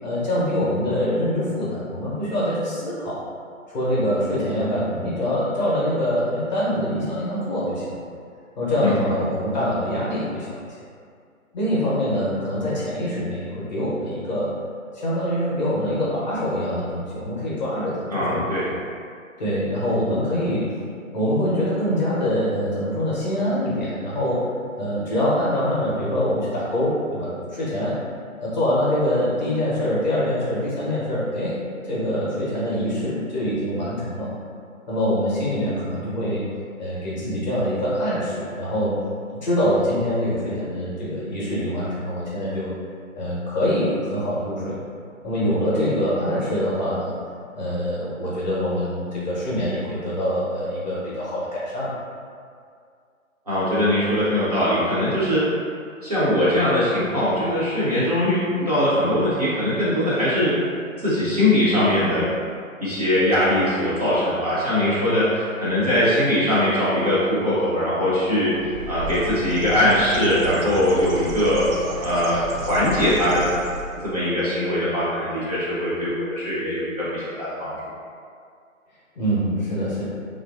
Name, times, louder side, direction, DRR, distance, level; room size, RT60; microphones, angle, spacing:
voice 1, 0.0-3.2 3.7-8.0 8.5-10.5 11.5-14.5 14.9-18.4 19.4-20.7 21.1-24.5 24.8-27.9 28.4-31.6 31.9-34.3 34.9-36.4 36.8-39.0 39.4-42.7 43.2-44.8 45.2-47.1 47.5-51.9 79.1-80.0, equal, 35° left, -7 dB, 0.7 m, -24 dB
voice 2, 18.1-18.7 53.5-55.5 56.0-60.5 61.0-62.3 62.8-71.6 72.0-72.4 72.7-73.4 74.0-77.7, left 1 dB, 30° right, -11 dB, 0.5 m, -21 dB
Bird, 68.5-74.1, right 1 dB, 75° right, 0.6 m, -33 dB
3.0 x 2.4 x 2.3 m, 2.3 s
figure-of-eight pair, 140°, 41 cm